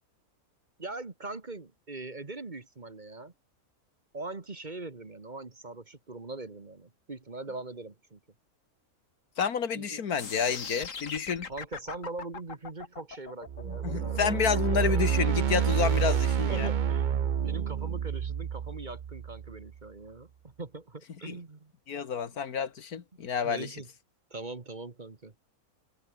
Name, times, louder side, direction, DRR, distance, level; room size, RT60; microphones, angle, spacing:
voice 1, 0.8-3.3 4.1-8.2 9.7-10.0 11.5-14.8 15.8-21.7 23.4-23.9 24.3-25.3, right 3 dB, 30° right, 1.8 m, -41 dB
voice 2, 9.4-11.5 13.7-16.7 21.2-21.4 21.9-23.7, left 7 dB, 85° left, 2.1 m, -30 dB
sound 1, 10.2-16.2, left 5 dB, 60° left, 2.1 m, -41 dB
sound 2, 13.5-19.7, right 8 dB, 50° right, 0.5 m, -28 dB
omnidirectional pair, 1.5 m